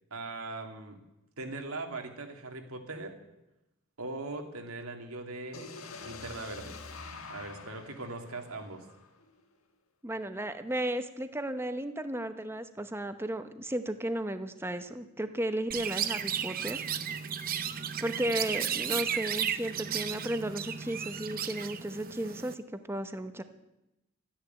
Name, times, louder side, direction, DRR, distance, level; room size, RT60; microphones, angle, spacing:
voice 1, 0.1-1.0 1.4-3.1 4.0-5.7 6.0-6.8 7.3-8.9 18.9-19.0, right 2 dB, 90° right, 4 dB, 2.3 m, -40 dB
sound 1, 5.5-9.4, left 4 dB, 75° left, 1.6 m, -46 dB
voice 2, 10.0-16.8 18.0-23.4, right 1 dB, 10° right, 9 dB, 0.9 m, -34 dB
Chirp tweet, 15.7-22.5, right 8 dB, 40° right, 0.8 m, -34 dB
13.5 x 10.0 x 9.2 m, 0.93 s
head